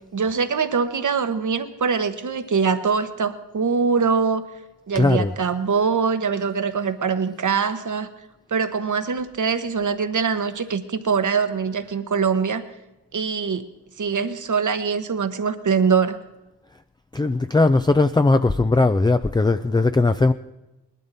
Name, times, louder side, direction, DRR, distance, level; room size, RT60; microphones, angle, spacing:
voice 1, 0.1-4.4 4.9-8.1 8.5-12.6 13.1-13.6 14.0-16.2, right 5 dB, 50° right, 10 dB, 1.2 m, -23 dB
voice 2, 4.9-5.3 17.1-20.3, left 3 dB, 10° left, 9 dB, 0.4 m, -18 dB
19.5 x 12.0 x 4.1 m, 1.0 s
cardioid pair, 60°, 39 cm